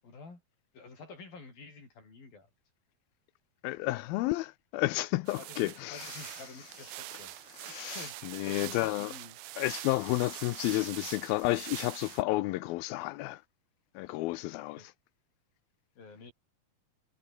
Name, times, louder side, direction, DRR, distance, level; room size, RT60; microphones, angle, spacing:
voice 1, 0.0-0.4 0.7-2.5 5.4-7.3 7.6-9.4 14.7-14.9 16.0-16.3, left 4 dB, 70° left, 9.7 m, -50 dB
voice 2, 3.6-6.2 7.6-9.1 9.6-13.4 14.0-14.9, left 18 dB, 85° left, 2.5 m, -31 dB
sound 1, 5.3-12.2, right 19 dB, 85° right, 2.5 m, -44 dB
omnidirectional pair, 4.3 m